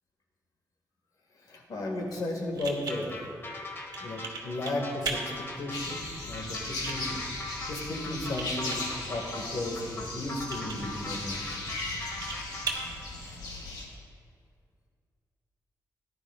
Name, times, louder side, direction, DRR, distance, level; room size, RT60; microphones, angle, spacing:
voice 1, 1.4-3.3 4.0-7.2 7.7-8.8 9.1-11.4, left 1 dB, 70° left, 0 dB, 1.9 m, -35 dB
sound 1, 1.9-14.0, right 4 dB, 80° right, 1.3 m, -41 dB
sound 2, 2.9-13.0, left 2 dB, 35° left, 1.2 m, -41 dB
sound 3, 5.7-13.9, left 2 dB, 85° left, 1.7 m, -37 dB
14.5 x 10.5 x 2.4 m, 2.2 s
cardioid pair, 105°, 7 cm